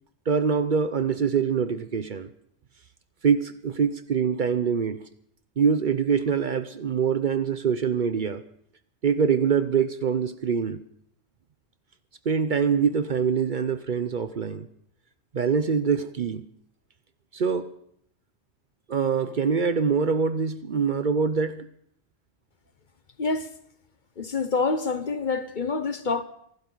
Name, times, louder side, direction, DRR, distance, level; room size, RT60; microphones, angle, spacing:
voice 1, 0.3-2.3 3.2-5.0 5.6-8.4 9.0-10.8 12.3-14.7 15.3-16.4 17.3-17.7 18.9-21.6, right 6 dB, 50° right, 0.8 m, -24 dB
voice 2, 23.2-23.5 24.2-26.2, left 4 dB, 45° left, 1.0 m, -27 dB
26.5 x 12.0 x 3.9 m
omnidirectional pair, 1.2 m